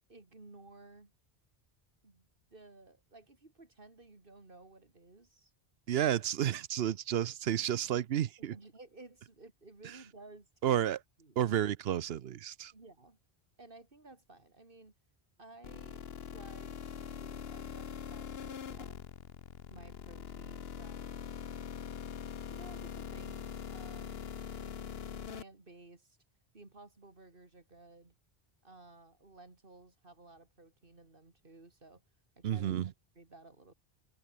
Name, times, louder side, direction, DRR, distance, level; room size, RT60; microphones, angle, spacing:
voice 1, 0.1-1.1 2.0-5.5 8.4-10.8 11.2-11.4 12.7-13.2 13.6-14.9 15.4-19.0 19.7-21.3 22.5-24.3 24.6-24.9 25.3-26.2 26.5-28.2 28.6-32.0 32.4-32.7 33.1-33.7, right 2 dB, 60° right, 3.1 m, -56 dB
voice 2, 5.9-8.5 10.6-11.0 11.4-12.7 32.4-32.9, right 10 dB, 80° right, 0.9 m, -31 dB
sound 1, 15.6-25.4, left 7 dB, 75° left, 1.2 m, -43 dB
omnidirectional pair, 1.0 m